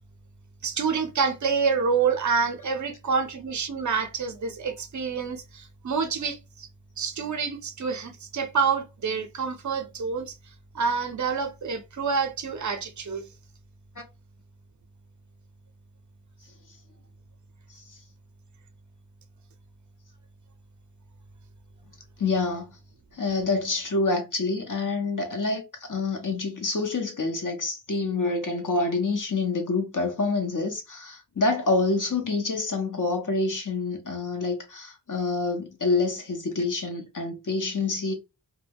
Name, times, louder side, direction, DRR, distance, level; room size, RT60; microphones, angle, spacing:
voice 1, 0.6-6.7 7.0-10.4 10.7-13.2, right 5 dB, 45° right, 0.6 m, -27 dB
voice 2, 22.2-22.7 23.1-38.1, left 3 dB, 50° left, 0.7 m, -27 dB
2.2 x 2.2 x 3.3 m
wide cardioid pair, 50°, 42 cm